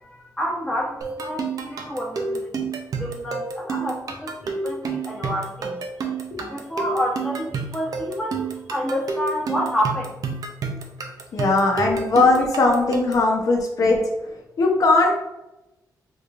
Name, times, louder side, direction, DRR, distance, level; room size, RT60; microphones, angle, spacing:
voice 1, 0.0-2.5 3.0-5.7 6.5-10.1, equal, 10° left, -4 dB, 1.0 m, -28 dB
sound 1, 1.0-13.3, right 4 dB, 60° right, 0.5 m, -30 dB
voice 2, 11.3-14.0 14.6-15.1, left 3 dB, 55° left, 1 dB, 0.7 m, -19 dB
3.6 x 3.0 x 2.5 m, 0.94 s
wide cardioid pair, 120°, 7 cm